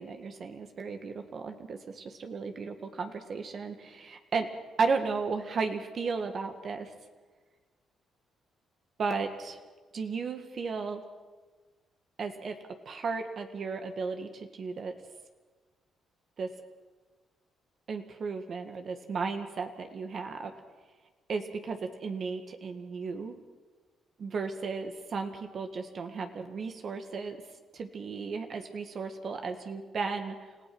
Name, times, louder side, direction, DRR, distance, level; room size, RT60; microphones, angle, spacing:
voice 1, 0.0-1.8 2.2-4.5 4.8-6.9 9.0-9.6 9.9-11.0 12.2-12.6 12.9-14.9 16.4-16.5 17.9-20.5 21.3-23.4 24.2-27.4 27.7-30.5, right 4 dB, 50° right, 6 dB, 1.9 m, -34 dB
30.0 x 16.0 x 6.2 m, 1.3 s
cardioid pair, 90°, 0 cm